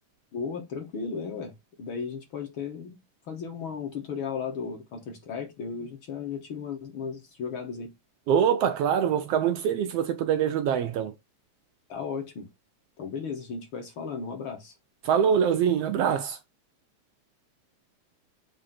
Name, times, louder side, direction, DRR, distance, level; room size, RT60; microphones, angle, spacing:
voice 1, 0.3-1.5 1.8-3.0 3.3-7.9 11.9-12.5 13.0-14.8, left 6 dB, 55° left, 1.8 m, -35 dB
voice 2, 8.3-11.1 15.0-16.4, right 8 dB, 75° right, 1.5 m, -24 dB
7.8 x 2.9 x 4.2 m
omnidirectional pair, 3.3 m